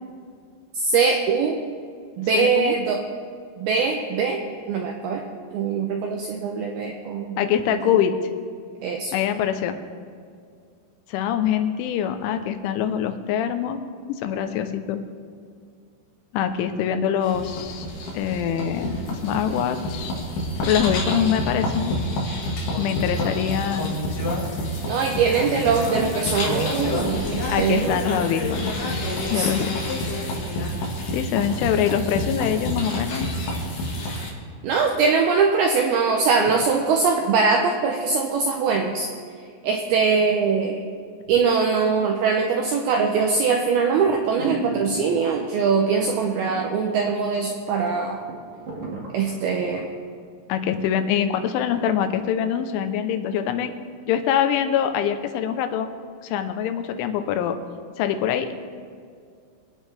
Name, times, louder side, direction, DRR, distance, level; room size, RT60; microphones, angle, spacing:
voice 1, 0.7-1.6 2.2-3.0 3.6-4.4 4.7-5.2 5.5-7.4 7.7-7.8 8.8-9.1 24.8-28.0 29.4-29.5 34.6-39.1 39.6-40.8 41.3-48.2 49.1-49.9, right 5 dB, 85° right, 2 dB, 2.2 m, -22 dB
voice 2, 2.3-2.7 7.4-8.2 9.1-9.8 11.1-13.8 14.1-15.0 16.3-17.9 18.1-20.1 20.6-22.0 22.8-24.0 27.5-29.8 31.1-33.4 50.5-53.7 54.1-55.9 56.2-57.6 58.0-58.5, left 9 dB, 90° left, 8 dB, 3.3 m, -24 dB
sound 1, 17.2-34.3, left 1 dB, 55° left, 3.1 m, -28 dB
sound 2, 43.2-43.5 44.0-44.1 44.3-45.4 46.0-46.7 47.0-47.1 47.6-47.7 47.9-49.8 50.2-50.3, right 3 dB, 40° right, 1.7 m, -33 dB
25.0 x 9.1 x 3.4 m, 2.2 s
omnidirectional pair, 5.4 m